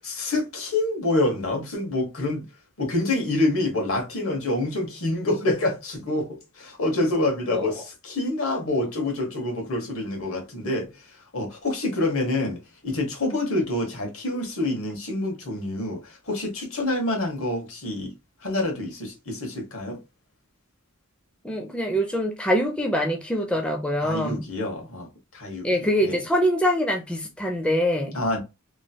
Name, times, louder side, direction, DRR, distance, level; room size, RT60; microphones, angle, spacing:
voice 1, 0.1-2.4 2.8-10.9 11.3-18.1 18.4-20.0 24.0-25.1 25.3-25.7 26.0-26.2 28.1-28.4, left 2 dB, 75° left, 1.3 m, -27 dB
voice 2, 21.4-24.4 25.6-28.2, equal, 5° left, 0.4 m, -24 dB
3.0 x 2.4 x 2.7 m
head